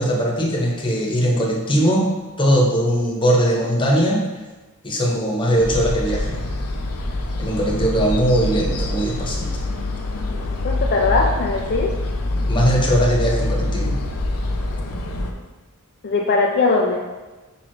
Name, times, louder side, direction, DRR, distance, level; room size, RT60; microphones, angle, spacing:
voice 1, 0.0-2.1 2.4-4.3 4.8-6.4 7.4-9.7 12.5-14.0, equal, 20° left, -1 dB, 1.1 m, -20 dB
sound 1, 5.6-15.3, left 1 dB, 85° left, 0.8 m, -25 dB
voice 2, 10.6-11.9 16.0-17.0, left 3 dB, 50° left, 0 dB, 0.5 m, -20 dB
5.2 x 4.7 x 4.7 m, 1.2 s
head